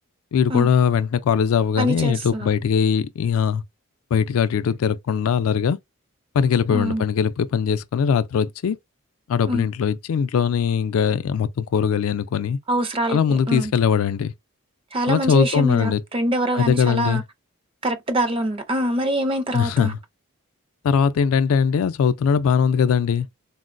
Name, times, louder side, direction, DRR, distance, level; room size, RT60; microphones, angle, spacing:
voice 1, 0.3-3.6 4.1-5.8 6.3-8.8 9.3-12.6 13.1-14.3 15.1-16.0 16.5-17.2 19.5-20.0 20.8-23.3, left 7 dB, 75° left, 0.3 m, -20 dB
voice 2, 1.8-2.5 6.7-7.1 9.5-9.7 12.7-13.2 13.5-13.7 14.9-17.2 17.8-19.9, right 1 dB, 25° right, 0.4 m, -24 dB
3.7 x 2.0 x 2.5 m
head